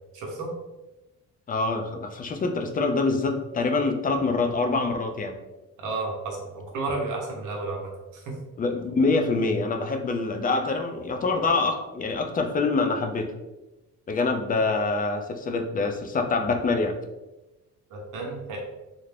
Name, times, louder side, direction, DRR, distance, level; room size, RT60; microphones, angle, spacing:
voice 1, 0.1-0.5 5.8-8.4 17.9-18.6, right 3 dB, 85° right, -1 dB, 0.8 m, -32 dB
voice 2, 1.5-5.3 8.6-13.3 14.1-16.9, left 3 dB, 30° left, 5 dB, 0.4 m, -25 dB
2.5 x 2.0 x 3.2 m, 1.0 s
cardioid pair, 90°, 30 cm